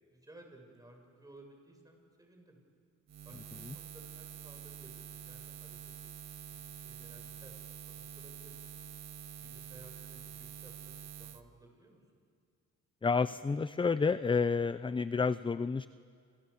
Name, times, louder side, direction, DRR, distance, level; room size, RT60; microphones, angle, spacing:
voice 1, 0.1-2.6 3.2-8.6 9.4-12.0, right 1 dB, 10° right, 2 dB, 7.7 m, -58 dB
Buzz, 3.1-11.4, right 9 dB, 60° right, 1.3 m, -47 dB
voice 2, 13.0-15.9, left 5 dB, 15° left, 15 dB, 0.6 m, -30 dB
29.5 x 27.0 x 7.2 m, 2.2 s
cardioid pair, 90°, 30 cm